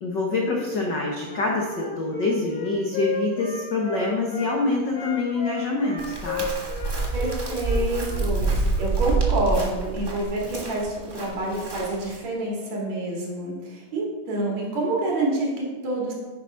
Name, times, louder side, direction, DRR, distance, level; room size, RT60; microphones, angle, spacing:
voice 1, 0.0-6.5, left 3 dB, 65° left, -1 dB, 1.0 m, -26 dB
Wind instrument woodwind instrument, 1.2-4.5 4.9-8.3, left 3 dB, 85° left, 4.8 m, -33 dB
Chirp tweet, 6.0-12.2, right 3 dB, 35° right, 0.3 m, -27 dB
voice 2, 7.1-16.1, right 2 dB, 65° right, -2 dB, 3.3 m, -27 dB
9.4 x 5.2 x 5.5 m, 1.3 s
omnidirectional pair, 3.5 m